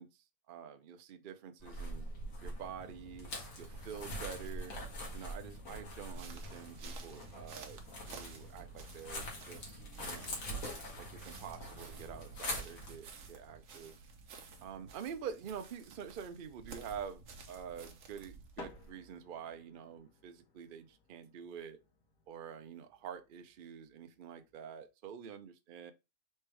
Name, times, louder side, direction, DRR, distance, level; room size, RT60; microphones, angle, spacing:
voice 1, 0.0-2.1 2.4-3.3 3.6-4.7 5.1-7.8 8.1-10.4 11.0-13.9 14.6-21.8 22.3-25.9, right 7 dB, 80° right, 0.4 m, -47 dB
sound 1, 1.6-13.0, equal, 60° left, 1.9 m, -44 dB
sound 2, 6.1-18.9, right 5 dB, 60° right, 1.1 m, -54 dB
sound 3, 18.5-24.9, left 4 dB, 90° left, 1.8 m, -58 dB
4.3 x 3.4 x 3.2 m
omnidirectional pair, 1.7 m